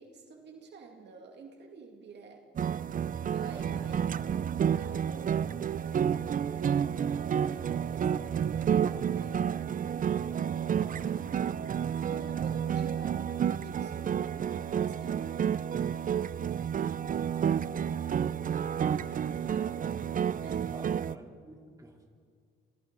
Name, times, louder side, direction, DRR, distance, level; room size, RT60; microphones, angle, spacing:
voice 1, 0.0-2.4 3.3-4.1 4.8-5.7 6.5-7.0 7.5-11.2 12.1-15.6 19.1-20.0 20.4-20.6, right 5 dB, 60° right, 2 dB, 2.4 m, -50 dB
sound 1, 2.6-21.2, right 8 dB, 45° right, 0.6 m, -30 dB
voice 2, 3.5-4.0 19.6-19.7 20.7-22.0, right 1 dB, 15° right, 0 dB, 3.8 m, -51 dB
28.5 x 25.5 x 4.1 m, 2.1 s
cardioid pair, 90°, 20 cm